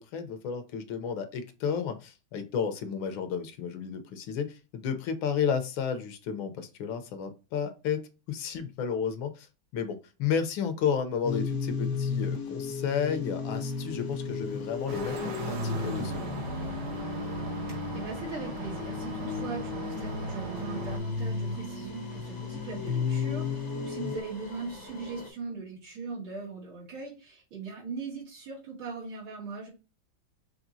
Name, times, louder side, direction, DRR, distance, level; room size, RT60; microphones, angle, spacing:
voice 1, 0.0-9.5 9.7-16.4, left 7 dB, 75° left, 8 dB, 1.5 m, -32 dB
sound 1, 11.2-24.2, left 4 dB, 55° left, 0.8 m, -34 dB
sound 2, 13.5-25.3, left 2 dB, 30° left, 0.9 m, -50 dB
sound 3, 14.9-21.0, right 2 dB, 60° right, 1.9 m, -39 dB
voice 2, 17.6-29.7, right 4 dB, 80° right, -6 dB, 3.2 m, -40 dB
6.0 x 3.3 x 2.6 m, 0.30 s
omnidirectional pair, 2.3 m